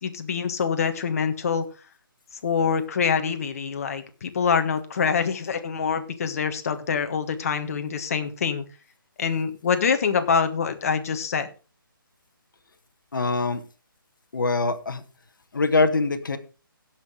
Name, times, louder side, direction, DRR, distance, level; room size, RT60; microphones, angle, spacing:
voice 1, 0.0-1.6 2.4-8.6 9.2-11.5, left 6 dB, 40° left, 8 dB, 1.4 m, -25 dB
voice 2, 13.1-13.6 14.3-15.0 15.5-16.4, left 3 dB, 65° left, 9 dB, 1.4 m, -23 dB
16.5 x 6.1 x 4.8 m, 0.34 s
figure-of-eight pair, 150°, 12 cm